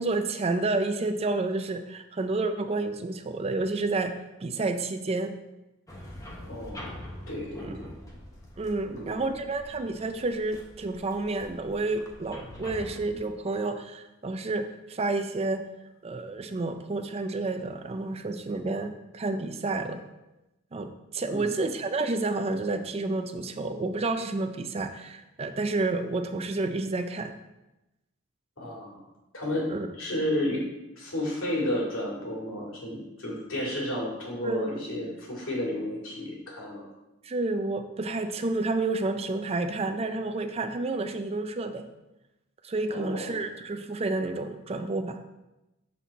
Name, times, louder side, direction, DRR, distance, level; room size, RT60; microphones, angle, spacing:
voice 1, 0.0-4.1 4.4-5.3 7.6-7.8 8.6-15.6 16.0-20.0 20.7-27.4 29.7-29.9 34.4-34.8 37.2-41.9 42.6-45.2, right 2 dB, 30° right, 7 dB, 0.4 m, -30 dB
sound 1, 5.9-13.2, left 1 dB, 15° left, 1.0 m, -45 dB
voice 2, 6.4-7.0 7.3-7.9 8.8-9.4 21.3-21.6 28.6-29.0 29.3-30.6 31.0-36.8 42.9-43.5, left 1 dB, 90° left, -3 dB, 2.3 m, -32 dB
7.6 x 4.2 x 4.0 m, 0.99 s
head